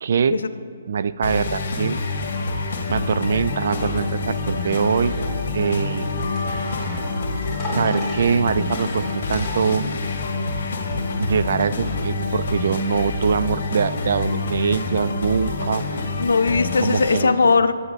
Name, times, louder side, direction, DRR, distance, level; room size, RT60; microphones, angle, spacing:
voice 1, 0.0-0.4 0.9-2.0 2.9-5.1 5.5-6.1 7.7-9.0 9.3-9.9 11.2-15.9 16.8-17.4, right 6 dB, 60° right, 14 dB, 0.3 m, -23 dB
sound 1, 1.2-17.2, left 3 dB, 60° left, 1.4 m, -27 dB
sound 2, 3.6-10.2, left 1 dB, ahead, 2.7 m, -37 dB
sound 3, 5.9-7.0 7.5-8.3, left 3 dB, 20° left, 2.0 m, -35 dB
voice 2, 7.7-8.2 16.2-17.7, left 4 dB, 90° left, 12 dB, 0.5 m, -19 dB
19.5 x 7.7 x 2.5 m, 2.2 s
hypercardioid pair, 165°, 0 cm